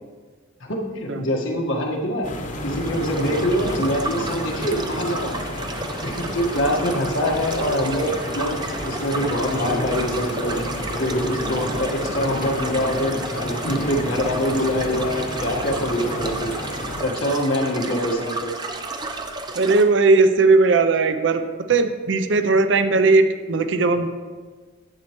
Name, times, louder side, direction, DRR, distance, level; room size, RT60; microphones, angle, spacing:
voice 1, 0.6-2.3 2.6-5.4 6.0-10.6 11.0-16.5 17.0-18.5, equal, 90° left, 0 dB, 1.5 m, -24 dB
sound 1, 2.2-17.0, left 1 dB, 40° left, 0.9 m, -30 dB
sound 2, 2.6-19.8, right 3 dB, 20° right, 0.5 m, -33 dB
voice 2, 19.6-21.4 21.7-24.2, right 3 dB, 70° right, 9 dB, 0.5 m, -17 dB
11.0 x 8.6 x 3.0 m, 1.5 s
head